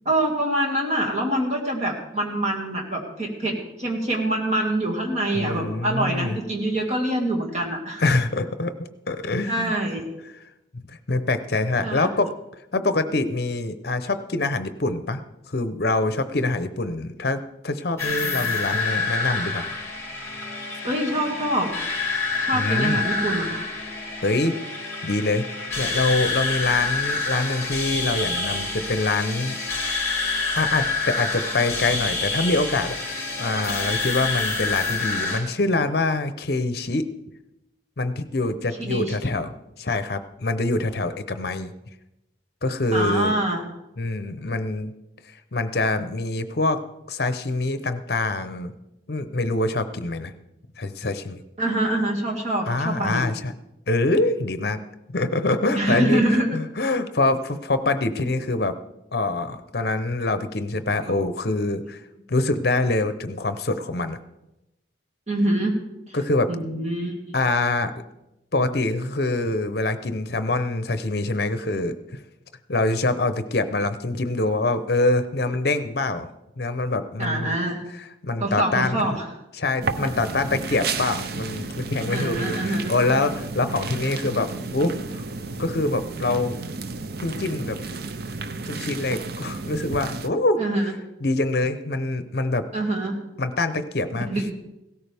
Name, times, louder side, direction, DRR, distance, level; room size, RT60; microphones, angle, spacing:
voice 1, 0.1-8.0 9.5-10.1 11.8-12.1 20.8-21.7 22.4-23.5 38.8-39.2 42.9-43.6 51.6-53.2 55.7-56.5 65.3-65.8 66.1-66.2 66.5-67.3 77.2-77.8 78.4-79.2 80.0-80.1 80.7-80.8 82.1-82.9 90.6-90.9 92.7-93.2 94.3-94.5, right 1 dB, 35° right, 0 dB, 2.1 m, -25 dB
voice 2, 5.3-6.4 8.0-9.7 10.7-10.8 11.1-12.3 12.7-15.2 15.5-19.7 22.5-23.0 24.2-24.6 25.0-25.5 25.8-29.6 30.6-33.0 33.4-37.1 38.0-39.5 39.8-41.7 42.6-43.3 44.0-44.9 45.5-46.8 47.1-48.7 49.1-50.3 50.8-51.4 52.7-53.5 53.9-54.8 55.1-56.2 56.5-58.8 59.1-62.0 62.3-64.2 66.1-66.5 67.3-67.9 68.5-71.9 72.7-76.3 76.6-77.6 78.2-79.2 79.5-85.2 85.6-86.5 87.2-87.8 88.7-90.6 91.2-92.7 93.4-94.5, left 2 dB, 55° left, 11 dB, 0.8 m, -25 dB
sound 1, 18.0-35.4, left 3 dB, 15° left, 2.6 m, -27 dB
sound 2, 79.8-90.3, right 4 dB, 55° right, 0.6 m, -32 dB
16.5 x 13.5 x 3.5 m, 0.92 s
head